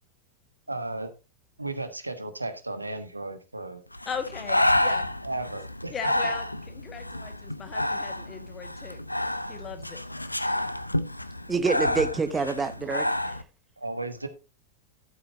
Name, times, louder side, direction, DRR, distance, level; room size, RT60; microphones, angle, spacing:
voice 1, 0.7-1.1 1.6-3.8 5.2-5.9 13.8-14.3, right 2 dB, 85° right, 1.2 m, -34 dB
Breathing, 3.9-13.4, left 1 dB, 85° left, 0.6 m, -29 dB
voice 2, 4.0-5.0 5.9-9.0 9.5-10.0, left 6 dB, 25° left, 1.7 m, -38 dB
voice 3, 11.5-13.4, right 4 dB, 15° right, 0.9 m, -27 dB
12.5 x 8.1 x 2.8 m
figure-of-eight pair, 90°, 0 cm